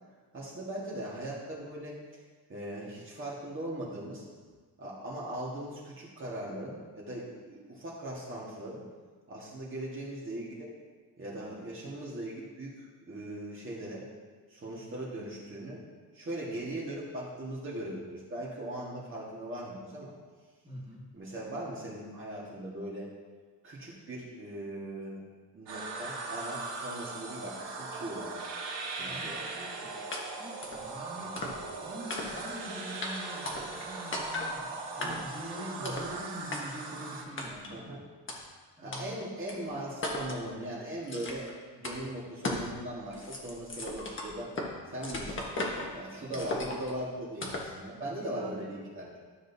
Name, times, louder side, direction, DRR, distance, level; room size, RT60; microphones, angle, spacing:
voice 1, 0.3-2.0 2.5-4.2 4.8-8.8 9.3-10.7 11.2-12.7 13.1-14.0 14.5-15.8 16.1-20.1 21.1-23.1 23.6-25.2 25.5-28.5 29.0-29.5 31.2-31.6 35.0-35.2 35.8-35.9 37.7-38.0 38.8-44.5 44.9-45.5 45.9-49.2, right 1 dB, 30° right, -6 dB, 1.6 m, -39 dB
voice 2, 20.6-21.0 29.0-31.4 31.7-38.0 38.8-39.3 46.2-46.6 48.0-48.7, equal, 15° right, -5 dB, 1.8 m, -44 dB
sound 1, 25.7-37.2, right 3 dB, 90° right, 2.1 m, -39 dB
sound 2, 30.1-30.2 30.6-30.8 31.3-31.8 32.1-32.6 33.0-33.1 33.4-33.9 34.1-34.5 35.0-35.4 35.8-36.1 36.5-36.6 37.4-37.7 38.3-38.4 38.9-39.0 39.5-39.6 40.0-40.4 41.1-41.5 41.8-42.0 42.4-42.7 43.0-44.7 45.0-45.9 46.3-46.9 47.4-47.7, left 2 dB, 30° left, 1.3 m, -36 dB
13.0 x 6.3 x 2.7 m, 1.5 s
cardioid pair, 150°, 40 cm